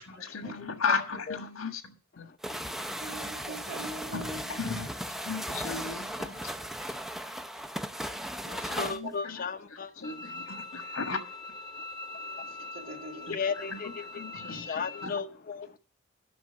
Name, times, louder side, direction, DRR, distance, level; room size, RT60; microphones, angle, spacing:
voice 1, 0.0-2.6 4.1-6.5 6.8-7.0 8.3-9.4 9.7-11.2 13.3-13.4 13.7-15.2, left 5 dB, 80° left, 1.6 m, -36 dB
voice 2, 0.6-1.0 1.3-1.4 2.2-3.2 8.1-8.2 8.8-10.0 12.4-12.7 13.3-15.8, left 5 dB, 45° left, 0.7 m, -36 dB
sound 1, 2.4-9.0, equal, ahead, 0.6 m, -37 dB
voice 3, 2.9-4.6 6.6-6.7 8.3-9.2 12.2-13.4 14.1-14.6, right 1 dB, 70° right, 2.4 m, -44 dB
Bowed string instrument, 10.0-15.1, left 3 dB, 20° left, 0.9 m, -42 dB
11.0 x 6.2 x 6.9 m
head